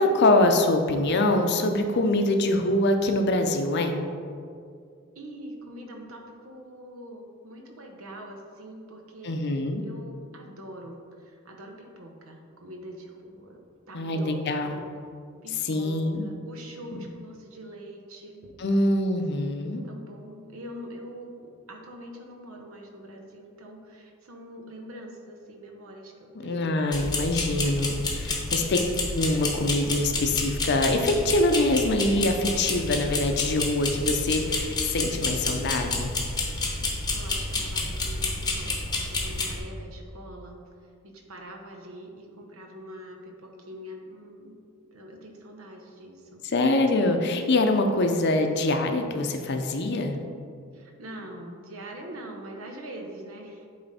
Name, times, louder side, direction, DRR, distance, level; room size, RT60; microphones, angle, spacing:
voice 1, 0.0-4.0 9.2-9.8 13.9-14.8 15.6-16.3 18.6-19.8 26.3-28.8 29.1-36.1 46.4-50.2, left 2 dB, 55° left, 5 dB, 0.6 m, -24 dB
voice 2, 5.1-13.6 13.9-14.9 15.4-18.9 19.8-26.7 28.5-28.8 37.1-40.6 41.0-44.6 44.9-46.5 50.7-53.6, equal, 80° right, 2 dB, 0.9 m, -44 dB
sound 1, 26.9-39.6, left 3 dB, 20° left, 0.9 m, -29 dB
8.7 x 3.4 x 4.2 m, 2.3 s
head